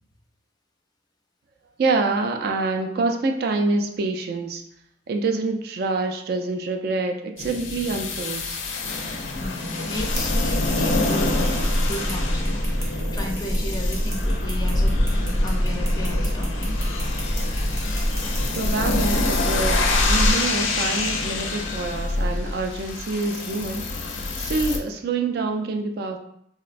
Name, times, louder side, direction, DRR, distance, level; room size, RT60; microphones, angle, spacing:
voice 1, 1.8-4.6 5.1-8.6 18.5-23.9 24.4-26.2, right 3 dB, 55° right, 4 dB, 0.3 m, -26 dB
sound 1, 7.4-24.8, left 3 dB, 90° left, 0.5 m, -27 dB
voice 2, 9.3-11.6 11.9-16.8, left 1 dB, 20° left, 1 dB, 0.4 m, -34 dB
sound 2, 10.0-20.3, equal, 15° right, 0.7 m, -25 dB
3.8 x 2.1 x 2.5 m, 0.72 s
head